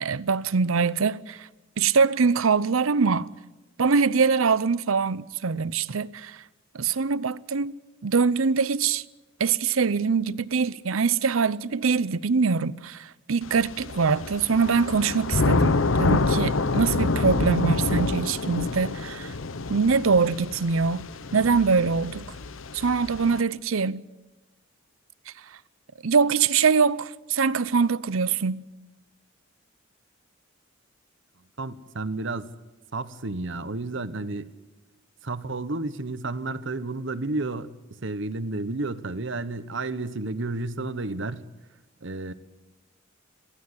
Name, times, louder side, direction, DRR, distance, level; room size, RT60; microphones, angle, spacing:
voice 1, 0.0-1.5 1.8-3.3 3.8-6.4 6.7-7.7 8.0-9.0 9.4-19.3 19.7-21.0 21.3-22.3 22.7-24.0 26.0-28.6, right 5 dB, 85° right, 0.7 m, -23 dB
Thunder / Rain, 13.4-23.4, left 3 dB, 75° left, 0.9 m, -27 dB
voice 2, 31.6-32.5 32.9-34.5 35.2-37.7 38.0-41.4 42.0-42.3, right 2 dB, 65° right, 1.1 m, -31 dB
23.0 x 15.5 x 9.9 m
head